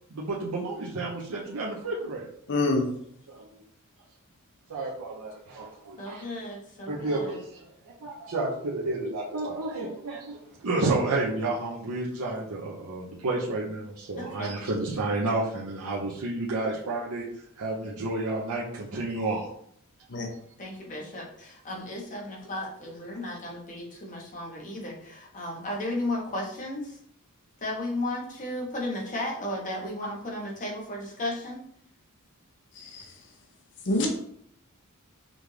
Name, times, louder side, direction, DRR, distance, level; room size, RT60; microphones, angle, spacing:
voice 1, 0.1-2.3 3.3-3.5 4.7-6.2 6.9-17.2 17.6-19.5, right 2 dB, 75° right, -4 dB, 0.7 m, -31 dB
voice 2, 2.5-2.8 20.1-20.3 32.9-33.0 33.9-34.1, left 2 dB, 55° left, 2 dB, 0.7 m, -25 dB
voice 3, 6.0-7.4 14.2-14.5 20.6-27.0 27.6-31.6, left 1 dB, 35° left, -2 dB, 1.1 m, -34 dB
5.1 x 2.5 x 3.2 m, 0.67 s
head